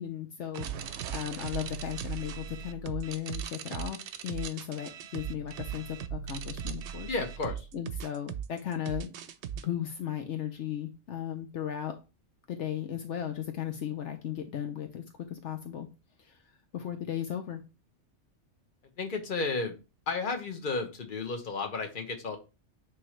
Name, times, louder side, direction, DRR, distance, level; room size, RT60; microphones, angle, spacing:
voice 1, 0.0-7.1 7.7-9.1 9.6-11.9 12.5-15.0 15.3-15.9 16.2-16.3 16.7-17.6, left 10 dB, 70° left, 6 dB, 1.0 m, -36 dB
sound 1, 0.5-9.6, right 8 dB, 70° right, 0.8 m, -38 dB
voice 2, 7.0-7.7 19.0-19.8 20.1-22.4, left 3 dB, 45° left, 4 dB, 1.2 m, -33 dB
9.5 x 3.2 x 3.2 m, 0.30 s
omnidirectional pair, 1.3 m